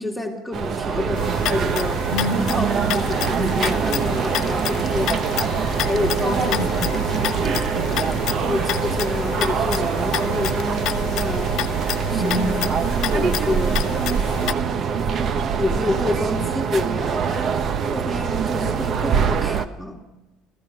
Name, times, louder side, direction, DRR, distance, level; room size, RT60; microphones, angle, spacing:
voice 1, 0.0-2.1 2.3-5.2 5.8-6.6 8.5-11.6 12.1-12.7 13.1-13.9 14.4-14.9 15.6-17.6 17.9-20.0, left 2 dB, ahead, 2.3 m, -28 dB
sound 1, 0.5-19.7, right 6 dB, 45° right, 1.0 m, -24 dB
sound 2, 1.2-14.5, left 13 dB, 65° left, 1.1 m, -30 dB
voice 2, 2.1-2.4 6.2-8.5 12.2-12.7, equal, 75° right, 6.7 m, -29 dB
sound 3, 2.9-8.2, left 5 dB, 30° left, 0.9 m, -38 dB
27.5 x 15.0 x 6.7 m
supercardioid pair, 100°, 0 cm